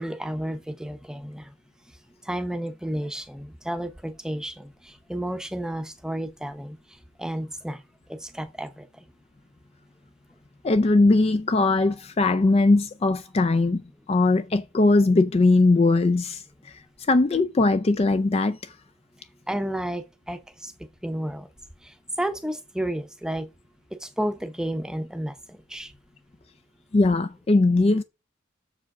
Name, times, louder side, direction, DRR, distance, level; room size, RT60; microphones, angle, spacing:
voice 1, 0.0-1.5 2.2-6.8 7.2-7.8 8.1-8.9 19.5-21.5 21.8-23.5 23.9-25.9, right 1 dB, 5° right, 0.7 m, -32 dB
voice 2, 10.6-13.8 14.1-16.8 17.1-18.7 26.9-28.0, left 2 dB, 30° left, 0.4 m, -20 dB
7.0 x 4.9 x 4.8 m
head